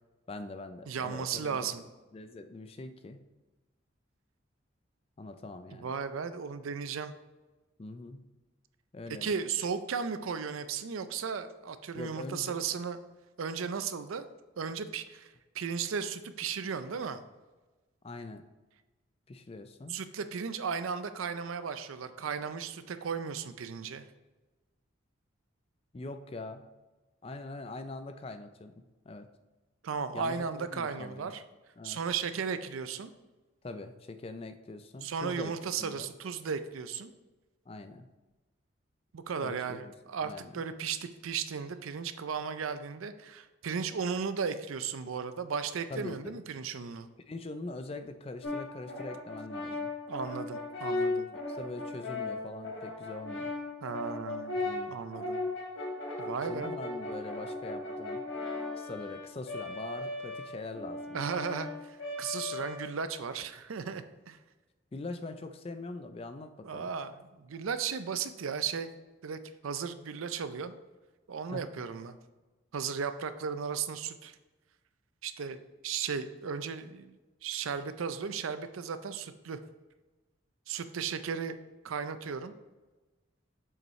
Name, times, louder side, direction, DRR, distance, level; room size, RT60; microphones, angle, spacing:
voice 1, 0.3-1.7 2.1-3.2 5.2-5.9 7.8-8.2 8.9-9.3 11.9-12.6 18.0-18.4 19.3-20.0 25.9-26.6 27.2-29.3 30.1-31.4 31.8-32.0 33.6-35.5 35.8-36.1 37.7-38.1 39.4-39.9 40.2-40.6 45.9-46.4 47.3-49.9 51.5-53.5 54.6-54.9 56.5-58.2 58.7-61.3 64.9-66.9 71.5-71.6, left 2 dB, 30° left, 9 dB, 0.4 m, -43 dB
voice 2, 0.9-1.8 5.7-7.1 9.2-13.0 13.4-14.2 14.6-17.2 19.9-24.0 29.8-31.4 31.8-33.1 35.0-37.1 39.1-47.1 50.1-51.3 53.8-54.6 54.9-55.4 56.2-56.7 61.1-64.4 66.6-68.9 69.2-70.7 71.3-72.2 72.7-74.4 75.2-75.6 75.8-77.2 77.4-79.6 80.7-81.6 81.8-82.5, right 6 dB, 85° right, 11 dB, 0.5 m, -35 dB
Brass instrument, 48.4-63.2, left 2 dB, 65° left, 1.5 m, -37 dB
7.3 x 5.4 x 3.2 m, 1.2 s
head